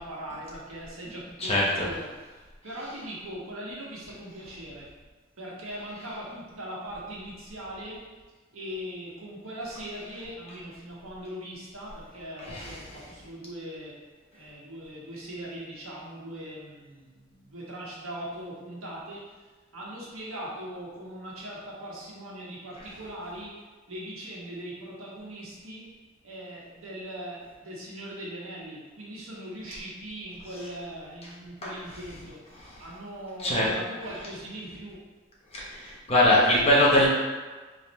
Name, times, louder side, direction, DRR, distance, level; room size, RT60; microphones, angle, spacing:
voice 1, 0.0-4.9 5.4-8.0 8.5-13.9 14.3-19.3 19.7-23.6 23.9-25.8 26.2-32.4 32.8-35.1, right 1 dB, 90° right, -5 dB, 1.4 m, -40 dB
voice 2, 1.4-1.9 12.4-12.7 31.6-31.7 33.4-33.7 35.5-37.1, left 1 dB, 30° left, -5 dB, 1.0 m, -22 dB
3.9 x 3.3 x 4.2 m, 1.3 s
head